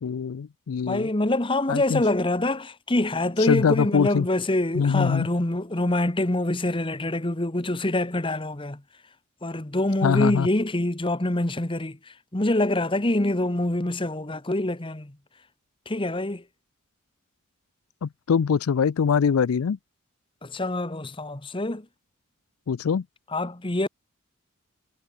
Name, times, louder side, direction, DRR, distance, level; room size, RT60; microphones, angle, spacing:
voice 1, 0.0-1.1 1.7-2.0 3.5-4.3 4.7-5.3 10.0-10.5 18.0-19.8 22.7-23.0, left 6 dB, 90° left, 0.4 m, -23 dB
voice 2, 0.9-8.8 9.4-12.0 12.3-15.1 15.9-16.4 20.4-21.8 23.3-23.9, left 1 dB, 25° left, 1.2 m, -25 dB
head